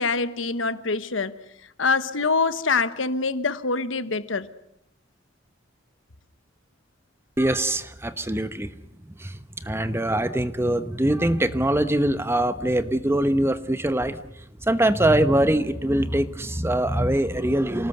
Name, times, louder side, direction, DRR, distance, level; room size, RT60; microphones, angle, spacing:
voice 1, 0.0-1.4 1.8-4.5, left 4 dB, 75° left, 1.2 m, -25 dB
voice 2, 7.4-8.7 9.2-14.2 14.6-17.9, right 1 dB, 15° right, 1.1 m, -23 dB
27.5 x 19.0 x 8.0 m
head